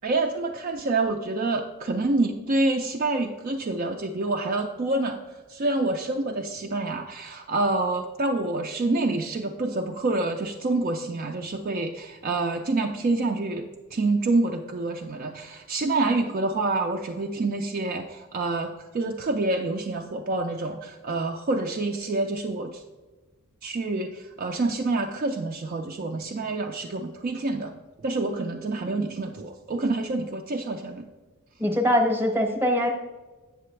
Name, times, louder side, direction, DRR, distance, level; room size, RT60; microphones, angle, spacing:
voice 1, 0.0-5.2 5.5-22.8 23.6-27.7 28.0-31.1, right 2 dB, 40° right, 3 dB, 0.4 m, -27 dB
voice 2, 31.6-32.9, equal, 10° right, 4 dB, 0.8 m, -22 dB
7.9 x 6.6 x 3.2 m, 1.2 s
head